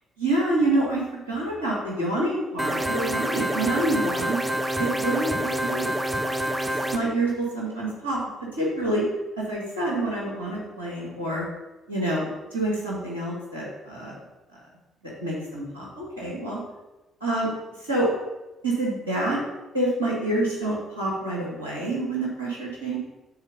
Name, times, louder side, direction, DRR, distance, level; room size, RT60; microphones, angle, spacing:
voice 1, 0.2-4.4 4.8-6.4 6.9-8.2 8.5-9.0 9.4-11.4 11.9-14.2 15.0-16.6 17.2-17.5 17.8-18.1 18.6-19.4 19.7-23.0, right 1 dB, 90° right, -5 dB, 1.9 m, -27 dB
sound 1, 2.6-7.0, right 1 dB, 15° right, 0.9 m, -27 dB
7.9 x 4.5 x 5.3 m, 1.0 s
figure-of-eight pair, 45°, 0 cm